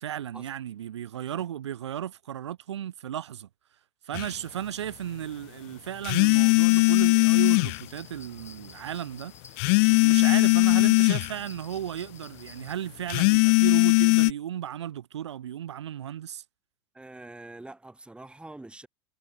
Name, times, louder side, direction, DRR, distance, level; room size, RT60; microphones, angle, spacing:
voice 1, 0.0-3.5 4.0-9.6 9.9-16.4, right 10 dB, 80° right, 2.6 m, -35 dB
sound 1, 4.1-4.3 6.0-7.8 9.6-11.3 13.1-14.3, left 40 dB or more, 50° left, 0.4 m, -20 dB
sound 2, 6.6-12.7, left 5 dB, 20° left, 2.6 m, -51 dB
voice 2, 16.9-18.9, right 2 dB, 5° right, 3.7 m, -45 dB
hypercardioid pair, 95°, 14 cm